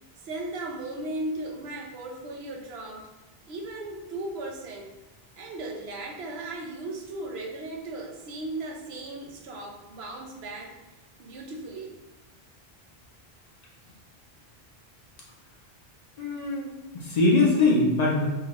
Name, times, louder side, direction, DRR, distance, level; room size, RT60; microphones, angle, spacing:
voice 1, 0.2-3.1 3.5-4.9 5.4-10.8 11.2-12.0, right 2 dB, 90° right, 0 dB, 0.9 m, -36 dB
voice 2, 16.2-16.7 16.9-18.3, left 2 dB, 50° left, -3 dB, 0.5 m, -22 dB
3.5 x 2.2 x 2.9 m, 1.1 s
omnidirectional pair, 1.0 m